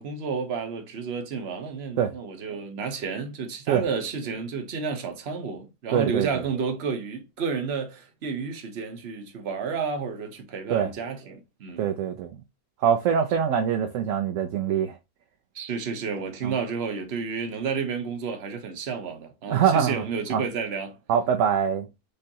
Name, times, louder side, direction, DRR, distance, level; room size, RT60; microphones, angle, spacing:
voice 1, 0.0-11.9 15.5-21.0, right 5 dB, 50° right, 1.1 m, -31 dB
voice 2, 5.9-6.3 10.7-10.9 11.8-12.3 12.8-15.0 16.4-16.5 19.5-20.0 20.3-20.4 21.1-21.9, right 8 dB, 65° right, 0.9 m, -23 dB
5.3 x 3.3 x 2.7 m
omnidirectional pair, 1.6 m